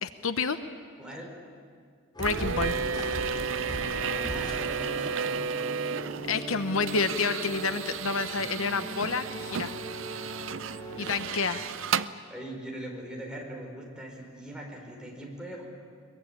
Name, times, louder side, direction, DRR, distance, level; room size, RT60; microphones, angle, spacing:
voice 1, 0.0-0.6 2.2-2.9 6.3-9.7 11.0-11.7, left 4 dB, 70° left, 10 dB, 0.9 m, -29 dB
voice 2, 1.0-1.3 3.3-5.4 10.0-10.3 10.9-11.2 11.9-15.7, right 1 dB, 5° right, -1 dB, 4.5 m, -42 dB
sound 1, 2.1-11.5, equal, 20° left, 4.1 m, -39 dB
sound 2, 2.2-12.1, right 6 dB, 65° right, 0.6 m, -33 dB
22.5 x 22.0 x 8.9 m, 2.1 s
head